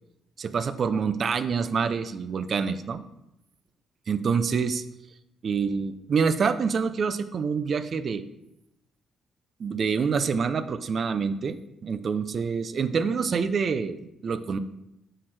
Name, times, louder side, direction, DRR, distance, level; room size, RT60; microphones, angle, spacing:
voice 1, 0.4-3.0 4.1-4.8 5.4-8.2 9.6-11.6 11.8-14.0 14.2-14.6, right 5 dB, 50° right, 12 dB, 0.4 m, -26 dB
7.4 x 4.4 x 3.3 m, 0.85 s
cardioid pair, 90°, 0 cm